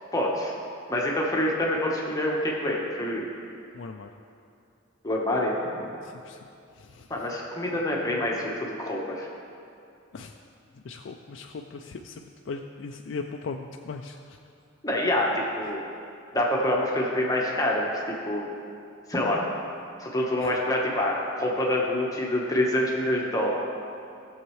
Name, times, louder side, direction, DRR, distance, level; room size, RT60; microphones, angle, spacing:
voice 1, 0.1-0.5 0.9-3.3 5.0-5.9 7.1-9.3 14.8-15.8 16.3-18.4 19.1-19.4 20.0-23.5, left 1 dB, 15° left, -3 dB, 1.0 m, -26 dB
voice 2, 3.7-4.1 6.0-6.4 6.8-7.1 10.1-10.3 10.7-14.4 20.4-20.5, left 4 dB, 60° left, 2 dB, 0.4 m, -38 dB
15.0 x 7.2 x 3.1 m, 2.5 s
head